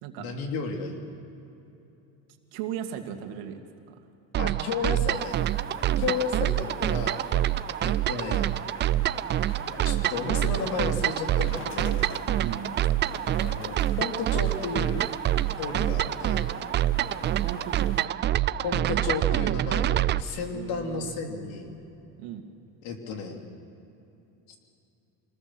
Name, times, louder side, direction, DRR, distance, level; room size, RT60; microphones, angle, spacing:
voice 1, 0.2-1.0 4.4-5.4 6.0-7.3 7.8-8.5 9.8-12.0 13.4-15.0 15.6-16.4 18.6-21.7 22.8-23.4 24.5-24.6, left 5 dB, 70° left, 3 dB, 3.3 m, -33 dB
voice 2, 2.5-3.6 3.9-4.0 5.9-6.2 12.4-12.8 17.4-17.9 20.5-21.1 22.2-22.5, right 10 dB, 75° right, 5 dB, 2.3 m, -37 dB
sound 1, 4.3-20.2, right 13 dB, 30° right, 0.4 m, -26 dB
sound 2, 5.1-18.1, left 4 dB, 35° left, 2.0 m, -44 dB
26.5 x 20.5 x 6.2 m, 2.9 s
cardioid pair, 130°, 37 cm